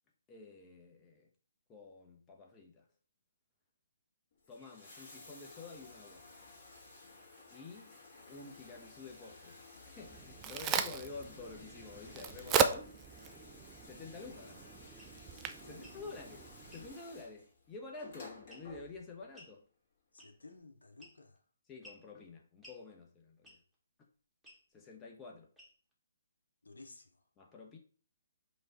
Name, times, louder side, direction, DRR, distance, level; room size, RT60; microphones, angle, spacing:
voice 1, 0.3-1.3 1.7-2.9 4.5-6.3 7.5-8.0 8.3-13.0 13.8-14.8 15.4-19.7 21.7-23.6 24.7-25.5 27.4-27.8, left 4 dB, 15° left, 0.8 m, -50 dB
Bathtub (filling or washing), 4.3-19.3 20.4-20.5, left 3 dB, 40° left, 1.8 m, -55 dB
Crack, 10.0-16.9, right 7 dB, 20° right, 0.4 m, -37 dB
sound 1, 15.0-15.2 15.7-16.0 16.7-16.9 18.5-18.8 19.3-19.6 20.2-20.5 21.0-21.4 21.8-22.1 22.6-22.8 23.4-23.7 24.4-24.6 25.6-25.9, equal, ahead, 1.1 m, -57 dB
voice 2, 15.6-16.2 20.1-21.4 26.6-27.2, left 2 dB, 75° left, 0.8 m, -55 dB
5.0 x 2.4 x 3.9 m
figure-of-eight pair, 135°, 0 cm